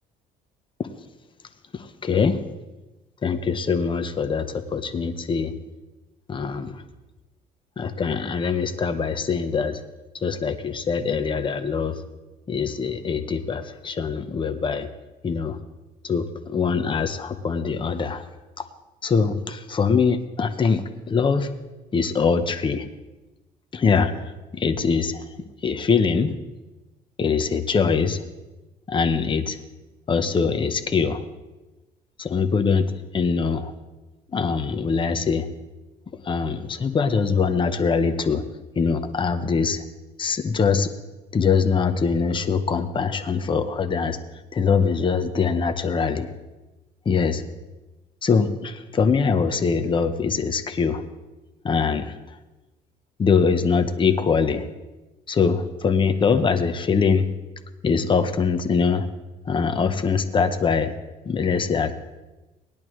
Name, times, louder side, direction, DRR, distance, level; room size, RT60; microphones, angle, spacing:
voice 1, 1.7-2.4 3.2-5.5 6.3-6.8 7.8-9.8 10.2-12.0 12.5-14.9 15.2-15.6 16.0-18.2 18.6-18.7 19.0-21.5 21.9-22.8 23.7-25.3 25.6-26.3 27.2-28.2 28.9-29.6 30.1-31.2 32.2-33.7 34.3-35.5 36.2-38.4 38.8-39.8 40.2-40.9 41.3-44.2 44.5-46.3 47.0-47.5 48.2-51.0 51.6-52.2 53.2-54.6 55.3-57.3 57.8-59.1 59.5-60.9 61.2-61.9, left 5 dB, 30° left, 9 dB, 0.9 m, -23 dB
18.0 x 10.5 x 3.2 m, 1.1 s
cardioid pair, 110°, 17 cm